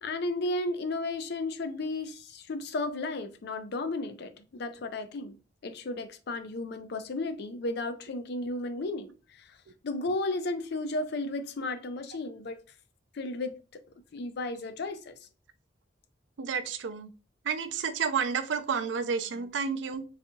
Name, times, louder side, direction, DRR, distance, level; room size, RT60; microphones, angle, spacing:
voice 1, 0.0-5.4 5.6-9.1 9.4-9.5 9.8-12.6 13.1-13.6 14.1-15.1, left 2 dB, 65° left, 0.4 m, -33 dB
voice 2, 16.4-17.1 17.5-20.0, right 6 dB, 75° right, 0.4 m, -30 dB
3.9 x 2.7 x 2.2 m
head